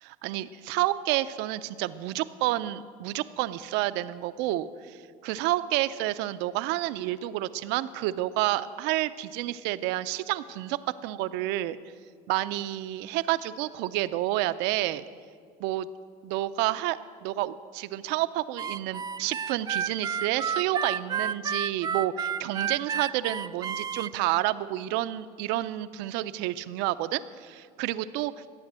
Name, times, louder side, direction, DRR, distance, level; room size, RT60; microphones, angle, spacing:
voice 1, 0.2-11.8 12.3-15.0 15.6-15.9 16.2-28.3, right 15 dB, 75° right, 14 dB, 0.6 m, -29 dB
Harmonica, 18.6-24.1, right 7 dB, 20° right, 0.4 m, -31 dB
13.5 x 8.9 x 7.5 m, 2.1 s
supercardioid pair, 95°, 18 cm